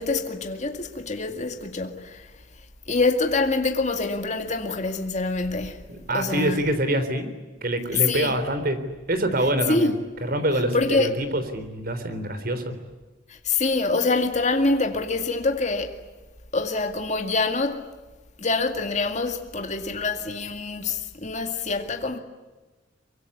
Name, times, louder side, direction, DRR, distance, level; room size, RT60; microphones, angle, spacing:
voice 1, 0.0-2.2 2.9-5.8 6.1-6.6 7.9-8.3 9.7-9.9 10.7-11.1 13.5-16.0 16.5-17.8 18.4-22.2, left 3 dB, 40° left, 2.1 m, -25 dB
voice 2, 5.9-7.3 7.6-8.8 9.1-10.0 10.2-12.8, right 1 dB, 50° right, 3.8 m, -25 dB
24.5 x 24.0 x 9.9 m
head